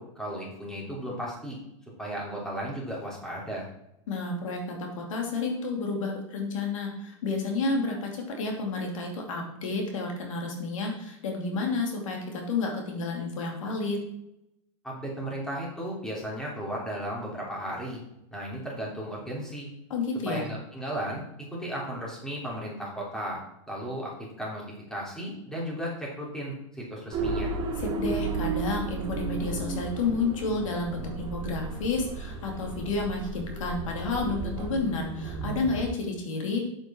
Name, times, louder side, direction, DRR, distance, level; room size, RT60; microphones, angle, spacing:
voice 1, 0.0-1.6 2.0-3.7 14.8-18.0 18.3-19.7 20.2-21.2 21.5-23.4 23.7-24.6 24.9-27.5, equal, 5° left, -4 dB, 3.2 m, -35 dB
voice 2, 4.1-14.0 19.9-20.5 27.8-36.6, left 3 dB, 80° left, 1 dB, 2.7 m, -30 dB
sound 1, 27.1-35.8, right 4 dB, 30° right, 2.5 m, -34 dB
8.7 x 7.7 x 4.4 m, 0.82 s
supercardioid pair, 140°, 16 cm